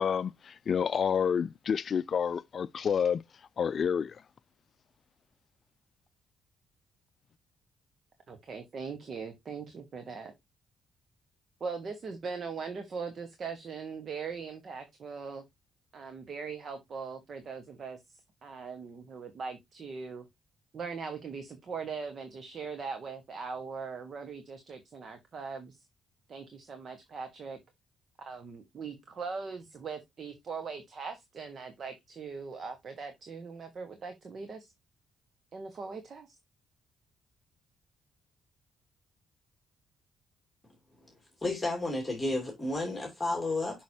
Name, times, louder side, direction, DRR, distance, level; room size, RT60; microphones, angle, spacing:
voice 1, 0.0-3.2 3.6-4.2, left 7 dB, 50° left, 0.4 m, -29 dB
voice 2, 8.3-10.3 11.6-15.4 15.9-18.0 18.4-20.2 20.7-25.8 26.3-27.6 28.3-34.7 35.5-36.4, right 5 dB, 50° right, 1.3 m, -40 dB
voice 3, 41.4-43.8, left 2 dB, 10° left, 2.7 m, -32 dB
6.3 x 6.1 x 2.8 m
cardioid pair, 90°, 0 cm